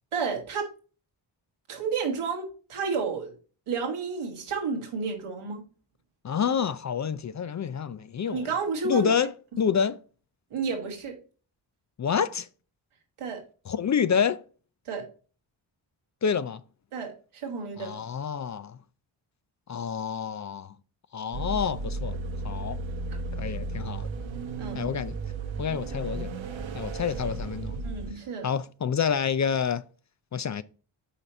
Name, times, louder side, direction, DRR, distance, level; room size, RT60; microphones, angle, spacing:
voice 1, 0.1-0.7 1.7-3.3 3.7-5.6 8.3-9.1 10.5-11.2 13.2-13.4 14.8-15.1 16.9-18.0 23.1-23.2 24.6-24.8 27.8-28.5, right 5 dB, 90° right, 1.6 m, -31 dB
voice 2, 6.2-8.4 8.8-9.3 9.6-10.0 12.0-12.5 13.7-14.4 16.2-16.6 17.8-18.8 19.7-20.7 21.1-22.2 22.4-22.8 23.4-24.1 24.7-25.2 25.6-26.3 26.7-27.8 28.4-29.8 30.3-30.6, left 7 dB, 40° left, 0.4 m, -28 dB
sound 1, 21.3-28.1, right 3 dB, 70° right, 0.9 m, -34 dB
5.7 x 4.2 x 4.2 m
cardioid pair, 45°, 48 cm